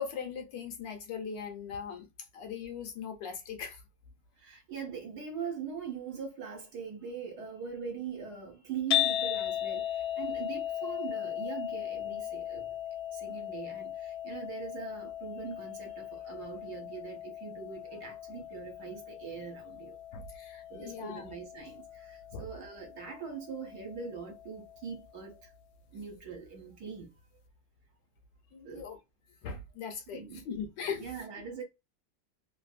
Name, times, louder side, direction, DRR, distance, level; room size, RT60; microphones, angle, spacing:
voice 1, 0.0-2.1 2.3-3.8 20.1-21.3 22.3-22.5 28.5-29.0 29.4-31.5, left 6 dB, 70° left, 1.3 m, -40 dB
voice 2, 4.4-12.6 13.1-19.9 20.7-25.4 25.9-27.1 28.6-28.8 30.1-30.4 31.0-31.6, right 6 dB, 60° right, 1.3 m, -42 dB
sound 1, 8.9-25.1, left 11 dB, 90° left, 1.4 m, -37 dB
3.2 x 2.6 x 2.4 m
omnidirectional pair, 2.1 m